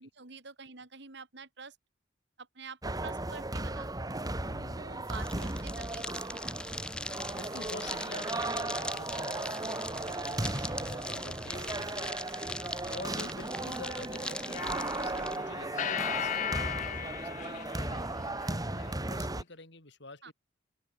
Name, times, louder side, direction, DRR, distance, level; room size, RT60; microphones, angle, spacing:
voice 1, 0.0-1.8 2.4-3.9 4.8-6.1 13.2-13.3 20.2-20.3, right 4 dB, 65° right, 2.8 m, -47 dB
sound 1, 2.8-19.4, right 2 dB, 20° right, 2.0 m, -36 dB
voice 2, 4.5-4.9 7.4-20.3, left 2 dB, 70° left, 7.8 m, -48 dB
sound 2, 5.0-15.4, left 1 dB, 5° left, 1.5 m, -41 dB
sound 3, 14.6-18.8, left 9 dB, 45° left, 0.5 m, -37 dB
open air
head